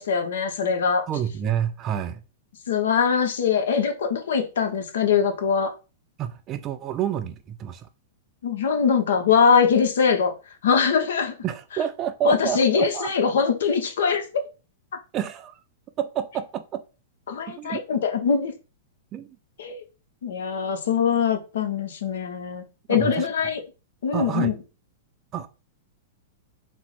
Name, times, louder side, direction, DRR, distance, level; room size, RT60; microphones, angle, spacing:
voice 1, 0.0-1.1 2.7-5.7 8.4-10.3 10.6-11.3 12.2-14.5 17.3-18.5 19.6-19.8 20.2-23.6 24.0-24.5, left 6 dB, 80° left, 0.9 m, -22 dB
voice 2, 1.1-2.2 6.2-7.9 11.4-13.1 15.1-15.6 16.0-16.8 17.5-17.8 19.1-19.4 22.9-23.3 24.1-24.5 25.3-25.5, right 10 dB, 30° right, 0.5 m, -28 dB
4.4 x 2.1 x 4.2 m
hypercardioid pair, 135°, 0 cm